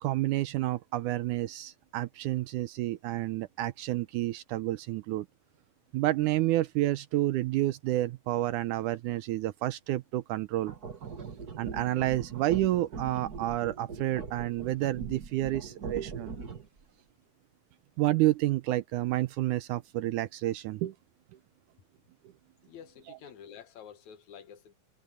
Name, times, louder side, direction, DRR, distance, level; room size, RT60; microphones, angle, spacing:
voice 1, 0.0-5.3 5.9-10.7 11.6-16.3 18.0-21.0, right 15 dB, 75° right, 2.0 m, -29 dB
sound 1, 10.6-16.8, right 5 dB, 40° right, 1.5 m, -41 dB
voice 2, 22.6-24.7, left 8 dB, 65° left, 2.2 m, -49 dB
omnidirectional pair, 3.9 m